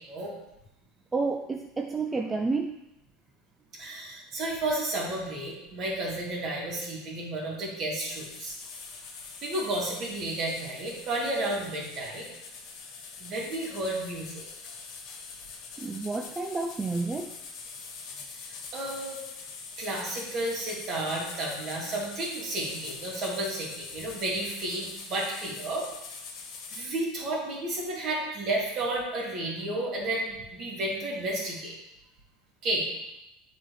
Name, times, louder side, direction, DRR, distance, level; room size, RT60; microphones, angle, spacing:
voice 1, 1.1-2.8 15.8-17.4, right 3 dB, 15° right, 3 dB, 0.4 m, -30 dB
voice 2, 3.8-8.6 9.4-12.3 13.2-14.4 18.4-19.2 19.8-25.8 26.7-31.8 32.6-32.8, right 1 dB, 45° right, -3 dB, 2.3 m, -32 dB
sound 1, 8.1-26.9, left 5 dB, 60° left, 1.3 m, -43 dB
8.9 x 4.3 x 3.1 m, 0.88 s
supercardioid pair, 135°, 0 cm